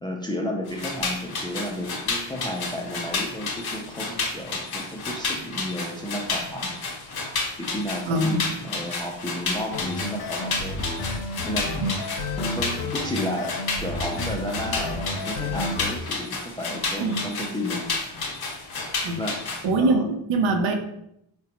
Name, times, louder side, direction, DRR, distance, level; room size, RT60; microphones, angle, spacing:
voice 1, 0.0-6.7 7.6-10.9 11.5-18.2 19.2-19.4 19.8-20.1, left 1 dB, 10° left, 0 dB, 0.3 m, -32 dB
sound 1, 0.7-19.6, left 3 dB, 50° left, 0.8 m, -31 dB
voice 2, 8.1-8.4 11.8-11.9 17.0-17.3 19.0-19.2 19.6-20.7, right 2 dB, 70° right, 5 dB, 0.7 m, -23 dB
sound 2, 9.7-16.0, left 2 dB, 80° left, 0.6 m, -31 dB
3.8 x 2.2 x 2.8 m, 0.77 s
cardioid pair, 85°, 49 cm